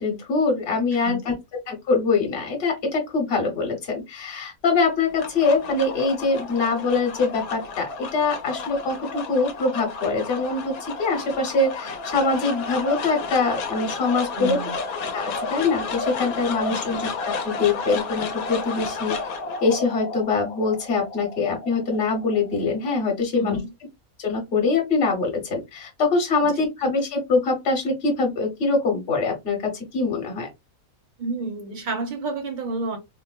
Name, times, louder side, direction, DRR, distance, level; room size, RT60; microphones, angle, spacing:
voice 1, 0.0-1.3 1.7-14.6 15.1-19.2 19.6-23.6 24.2-30.5, left 3 dB, 45° left, 1.1 m, -24 dB
voice 2, 1.0-1.4 14.4-14.8 16.7-16.9 23.4-23.7 26.4-26.5 31.2-33.0, right 2 dB, 45° right, 0.6 m, -30 dB
sound 1, 4.9-23.2, left 4 dB, 80° left, 1.1 m, -32 dB
3.9 x 2.0 x 2.3 m
omnidirectional pair, 1.5 m